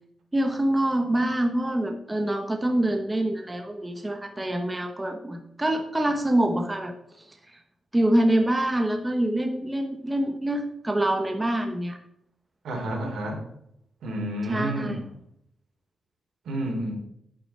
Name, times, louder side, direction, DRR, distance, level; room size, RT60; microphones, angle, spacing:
voice 1, 0.3-6.9 7.9-12.0 14.5-15.0, right 1 dB, 15° right, 5 dB, 1.2 m, -25 dB
voice 2, 12.6-13.4 14.0-15.1 16.4-16.9, right 1 dB, 80° right, 1 dB, 3.4 m, -30 dB
10.0 x 8.6 x 4.4 m, 0.73 s
wide cardioid pair, 115°, 0 cm